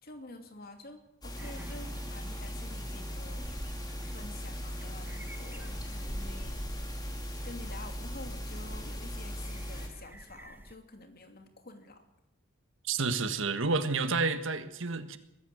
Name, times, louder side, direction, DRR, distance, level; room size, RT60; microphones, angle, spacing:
voice 1, 0.0-3.5 4.1-7.0 7.4-12.1, left 2 dB, 50° left, 6 dB, 2.8 m, -49 dB
sound 1, 1.2-9.9, equal, 20° left, 3.5 m, -39 dB
sound 2, 1.4-10.7, equal, 10° right, 1.1 m, -47 dB
voice 2, 12.8-15.2, right 4 dB, 70° right, 10 dB, 1.6 m, -30 dB
22.0 x 15.0 x 8.0 m, 0.86 s
head